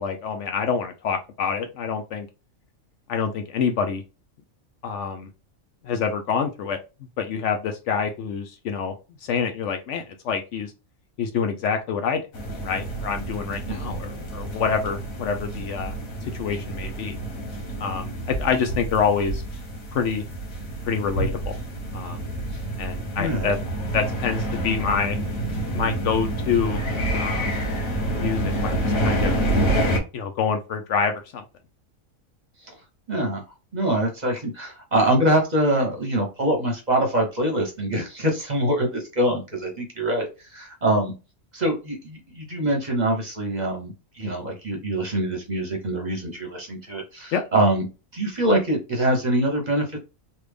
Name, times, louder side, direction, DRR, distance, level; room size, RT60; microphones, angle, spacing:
voice 1, 0.0-2.3 3.1-4.0 4.8-5.3 5.8-6.8 7.2-8.9 9.2-10.7 11.2-12.2 12.6-15.9 16.4-17.2 17.8-19.4 19.9-20.2 20.9-21.5 21.9-22.3 22.8-23.6 23.9-25.2 25.7-26.8 27.1-27.5 28.1-29.3 30.1-31.4 47.3-47.4, left 6 dB, 70° left, 6 dB, 0.8 m, -26 dB
sound 1, 12.3-30.0, right 1 dB, 85° left, 1.4 m, -28 dB
voice 2, 23.2-23.5 32.7-32.8 33.1-33.4 33.7-41.1 41.5-47.8 48.1-50.0, right 1 dB, 35° right, 1 dB, 0.9 m, -24 dB
3.3 x 2.4 x 3.3 m, 0.30 s
omnidirectional pair, 1.4 m